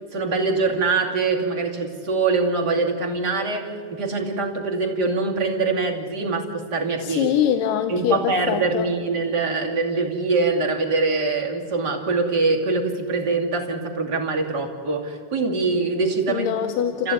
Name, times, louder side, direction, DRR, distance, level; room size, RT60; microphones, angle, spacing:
voice 1, 0.1-7.3 7.9-16.5 17.0-17.1, right 3 dB, 30° right, 0 dB, 2.9 m, -23 dB
voice 2, 7.0-8.9 16.3-17.1, left 9 dB, 90° left, 8 dB, 2.6 m, -23 dB
29.5 x 15.0 x 9.2 m, 2.3 s
omnidirectional pair, 3.7 m